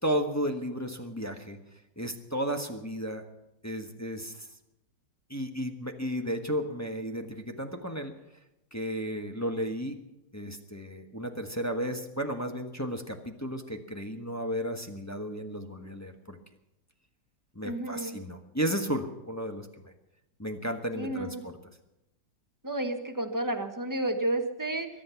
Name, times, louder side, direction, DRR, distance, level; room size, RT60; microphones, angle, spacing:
voice 1, 0.0-1.6 2.0-3.2 3.6-4.5 5.3-8.1 8.7-10.0 10.3-16.4 17.5-19.9 20.4-21.6, equal, 10° left, 3 dB, 1.1 m, -33 dB
voice 2, 17.6-18.2 21.0-21.4 22.6-24.9, right 1 dB, 10° right, 5 dB, 1.2 m, -31 dB
22.5 x 11.0 x 5.9 m, 0.91 s
omnidirectional pair, 2.0 m